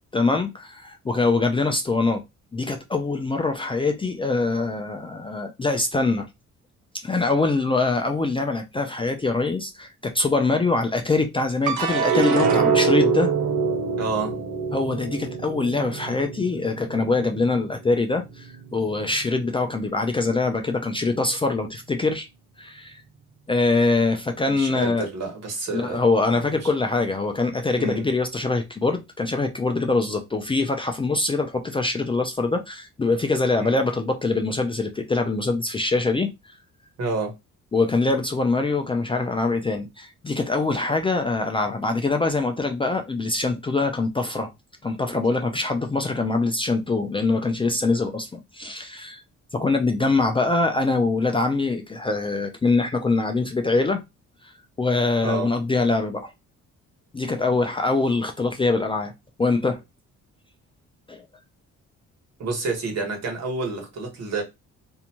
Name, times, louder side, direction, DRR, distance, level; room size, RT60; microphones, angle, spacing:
voice 1, 0.1-2.2 2.5-6.3 7.0-13.3 14.7-22.3 22.6-23.0 23.5-25.1 25.7-36.3 37.7-44.5 44.8-49.2 49.5-54.0 54.8-56.3 57.1-59.1 59.4-59.8 61.1-61.2, left 3 dB, 20° left, 0.4 m, -23 dB
sound 1, 11.7-18.1 18.5-19.2, right 5 dB, 80° right, 0.6 m, -24 dB
voice 2, 14.0-14.4 24.5-26.0 26.3-26.7 27.8-28.1 33.6-33.7 37.0-37.3 55.2-55.5 62.4-64.4, right 3 dB, 60° right, 1.3 m, -29 dB
2.6 x 2.2 x 2.9 m
cardioid pair, 90°, 30 cm